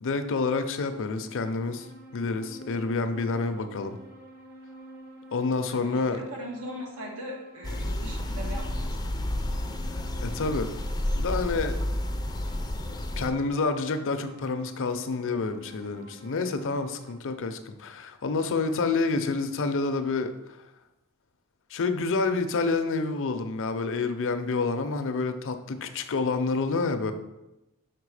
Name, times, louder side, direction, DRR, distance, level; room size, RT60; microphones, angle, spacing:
voice 1, 0.0-1.9 2.1-4.0 5.3-6.2 10.2-10.7 11.1-11.8 13.2-20.3 21.7-27.1, left 3 dB, 60° left, 8 dB, 0.6 m, -28 dB
sound 1, 0.8-17.1, right 1 dB, 45° right, 1.1 m, -49 dB
voice 2, 5.7-9.0, equal, 85° right, -1 dB, 1.7 m, -39 dB
sound 2, 7.6-13.3, left 1 dB, 15° left, 0.5 m, -30 dB
5.9 x 4.6 x 4.9 m, 0.97 s
head